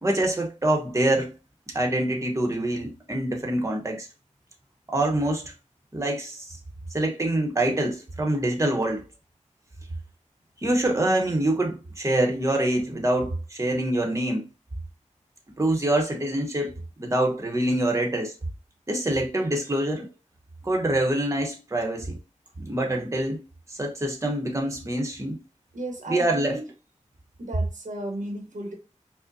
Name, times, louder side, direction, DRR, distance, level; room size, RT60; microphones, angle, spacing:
voice 1, 0.0-1.3 1.7-4.1 4.9-5.4 5.9-6.6 6.9-9.1 10.6-14.5 15.6-16.7 17.0-18.3 18.9-20.1 20.6-22.2 22.6-23.4 23.7-25.4 26.1-26.6, right 1 dB, 25° right, 0.9 m, -25 dB
voice 2, 25.7-26.6 27.4-28.8, right 1 dB, 85° right, 1.0 m, -34 dB
5.1 x 2.1 x 2.5 m
wide cardioid pair, 55°, 13 cm